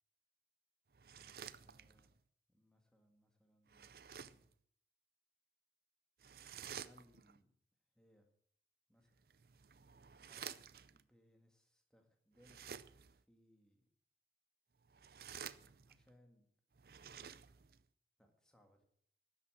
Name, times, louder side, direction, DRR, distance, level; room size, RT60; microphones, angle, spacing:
sound 1, 0.9-2.2 3.7-4.5 6.2-7.4 9.2-11.0 12.4-13.2 14.8-16.1 16.7-17.8, right 8 dB, 55° right, 0.5 m, -52 dB
voice 1, 1.2-2.1 2.5-4.5 6.8-7.5 7.9-8.3 8.9-9.2 10.2-10.5 10.9-13.9 15.9-16.5 18.2-18.8, equal, 5° left, 3 dB, 1.9 m, -70 dB
12.5 x 8.3 x 7.7 m, 0.66 s
head